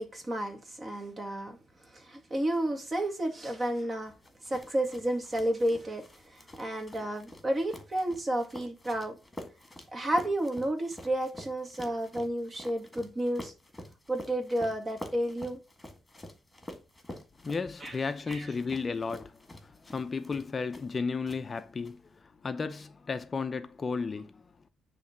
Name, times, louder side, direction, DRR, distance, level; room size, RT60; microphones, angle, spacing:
voice 1, 0.0-1.6 1.9-4.1 4.4-9.2 9.9-13.5 14.1-15.6 17.8-18.0 18.3-18.5, right 1 dB, 30° right, 1.9 m, -31 dB
sound 1, 4.2-21.0 21.3-21.9, left 1 dB, 15° left, 1.8 m, -48 dB
voice 2, 17.4-24.4, left 4 dB, 35° left, 0.6 m, -34 dB
9.7 x 3.3 x 5.8 m
cardioid pair, 90°, 0 cm